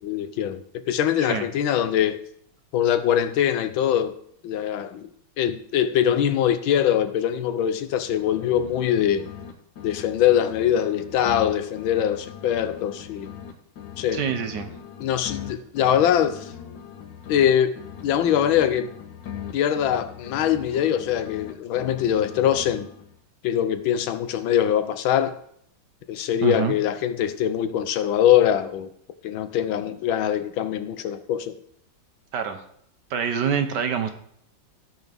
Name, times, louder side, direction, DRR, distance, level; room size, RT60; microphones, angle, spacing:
voice 1, 0.0-2.2 2.7-4.2 4.4-5.1 5.4-9.3 9.8-13.3 14.0-14.2 15.0-16.5 17.3-17.8 18.0-18.9 19.5-22.9 23.4-25.4 26.1-28.9 29.2-31.6, left 10 dB, 90° left, 1.6 m, -23 dB
sound 1, 7.9-9.5 9.8-13.5 13.8-17.5 17.8-21.5 21.8-23.2, left 8 dB, 70° left, 1.8 m, -40 dB
voice 2, 14.1-14.7 26.4-26.8 32.3-32.6 33.1-34.1, right 7 dB, 65° right, 1.5 m, -26 dB
15.5 x 6.2 x 3.5 m
omnidirectional pair, 2.1 m